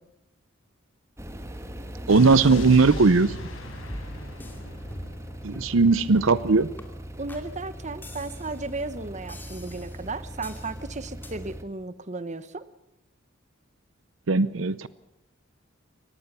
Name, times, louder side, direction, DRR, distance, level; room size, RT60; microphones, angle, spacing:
sound 1, 1.2-11.6, equal, 15° right, 1.6 m, -40 dB
Explosion, 2.1-6.1, left 1 dB, 80° left, 5.7 m, -37 dB
voice 1, 2.1-3.3 5.4-6.7 14.3-14.9, right 4 dB, 75° right, 16 dB, 0.7 m, -19 dB
sound 2, 3.9-4.6 4.9-5.3 5.5-5.8 6.2-6.4 6.8-6.9 7.3-7.4 8.0-8.7 9.3-10.0 10.4-10.7 11.2-11.3, left 1 dB, 10° left, 2.6 m, -43 dB
voice 2, 7.2-12.7, right 3 dB, 35° right, 14 dB, 1.0 m, -35 dB
23.5 x 19.0 x 6.9 m, 0.83 s
head